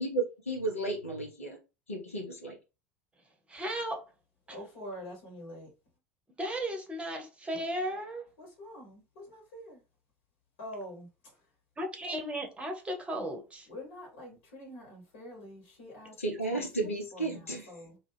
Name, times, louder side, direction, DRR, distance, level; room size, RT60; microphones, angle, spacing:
voice 1, 0.0-1.6 1.9-2.6 16.2-17.7, right 2 dB, 80° left, 0.9 m, -33 dB
voice 2, 3.5-4.0 6.4-8.3 11.8-13.7, right 1 dB, 15° right, 0.8 m, -35 dB
voice 3, 4.5-5.7 8.4-9.8 10.6-11.4 13.6-16.2 16.5-16.6 17.1-18.0, equal, 60° left, 1.3 m, -46 dB
2.4 x 2.4 x 3.3 m
figure-of-eight pair, 70°, 7 cm